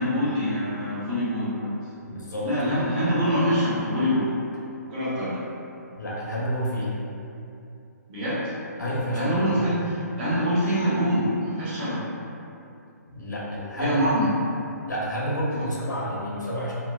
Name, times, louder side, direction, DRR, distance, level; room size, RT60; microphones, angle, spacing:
voice 1, 0.0-1.8 2.4-4.3 4.9-5.4 8.1-8.4 9.1-12.1 13.8-14.3 15.6-15.7, equal, 35° right, -10 dB, 0.9 m, -25 dB
voice 2, 2.1-2.5 6.0-6.9 8.8-9.6 13.1-14.0 14.9-16.7, equal, 85° left, -5 dB, 0.7 m, -29 dB
2.8 x 2.0 x 2.4 m, 2.7 s
figure-of-eight pair, 135°, 9 cm